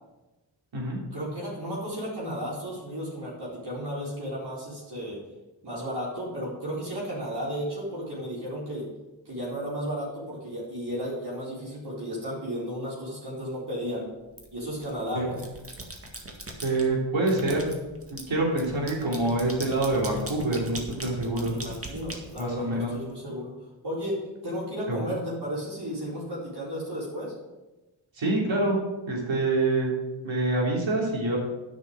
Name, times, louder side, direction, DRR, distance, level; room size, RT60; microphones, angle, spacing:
voice 1, 1.1-5.2 5.6-8.9 9.2-14.1 14.5-15.4 21.5-23.5 23.8-27.3, equal, 55° right, -7 dB, 4.2 m, -33 dB
sound 1, 14.4-14.9 15.3-16.9 17.3-23.0, right 2 dB, 30° right, 2.0 m, -40 dB
voice 2, 16.6-17.7 18.1-21.5 22.4-22.9 24.9-25.0 28.2-28.8 29.1-29.9 30.2-31.4, right 2 dB, 75° right, -2 dB, 3.4 m, -26 dB
9.6 x 6.3 x 6.5 m, 1.1 s
cardioid pair, 65°, 46 cm